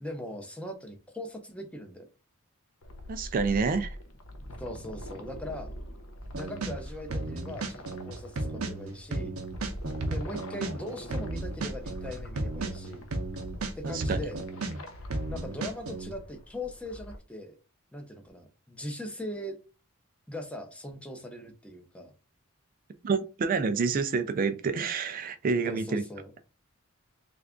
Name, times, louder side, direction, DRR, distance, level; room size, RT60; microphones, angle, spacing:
voice 1, 0.0-2.1 4.6-5.7 6.3-9.4 10.1-13.1 13.8-14.4 15.3-17.6 17.9-19.6 20.3-22.1 25.7-26.3, left 1 dB, 5° left, 0.6 m, -40 dB
sound 1, 2.8-17.2, equal, 75° left, 0.6 m, -43 dB
voice 2, 3.1-4.0 13.8-14.2 23.0-26.0, right 5 dB, 40° right, 0.3 m, -28 dB
sound 2, 6.2-6.8 7.1-10.8 11.1-14.8 15.1-16.1, right 2 dB, 90° right, 0.6 m, -34 dB
3.3 x 2.4 x 3.6 m
head